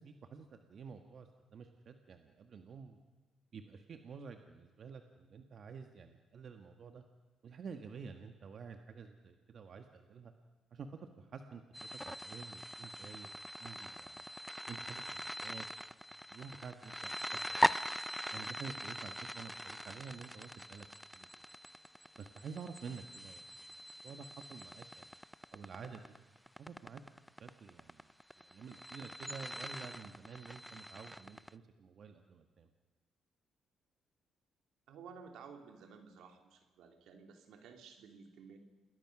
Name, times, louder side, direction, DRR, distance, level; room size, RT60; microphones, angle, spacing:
voice 1, 0.0-3.0 3.5-7.0 7.4-10.3 10.7-13.3 13.6-14.2 14.7-15.7 16.3-17.1 17.6-17.8 18.3-20.8 21.1-21.4 22.2-25.2 25.5-26.1 26.6-27.0 27.4-28.1 28.4-32.7, right 5 dB, 55° right, 6 dB, 1.5 m, -50 dB
sound 1, 11.7-31.5, equal, ahead, 0.6 m, -41 dB
voice 2, 34.9-38.6, right 6 dB, 80° right, 5 dB, 3.0 m, -54 dB
28.5 x 20.5 x 6.1 m, 1.3 s
cardioid pair, 90°, 0 cm